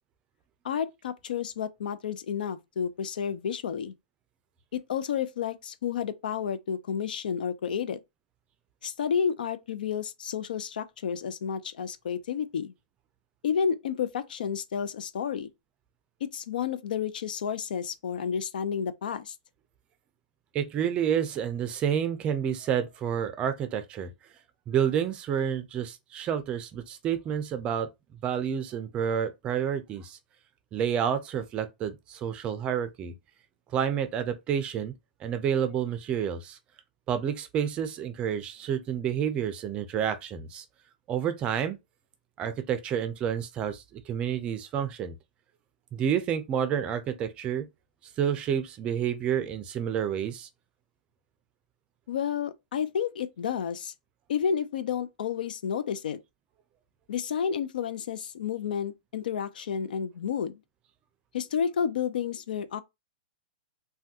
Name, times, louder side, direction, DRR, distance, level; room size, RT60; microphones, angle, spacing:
voice 1, 0.6-3.9 4.7-8.0 8.8-12.7 13.4-15.5 16.3-19.4 52.1-53.9 54.3-56.2 57.1-60.5 61.3-62.8, left 7 dB, 75° left, 0.5 m, -31 dB
voice 2, 20.5-24.1 24.7-27.9 28.2-30.2 30.7-33.1 33.7-34.9 35.2-36.6 37.1-40.6 41.1-41.8 42.4-45.1 45.9-47.7 48.2-50.5, right 8 dB, 20° right, 0.4 m, -29 dB
3.4 x 2.2 x 2.7 m
hypercardioid pair, 150°, 5 cm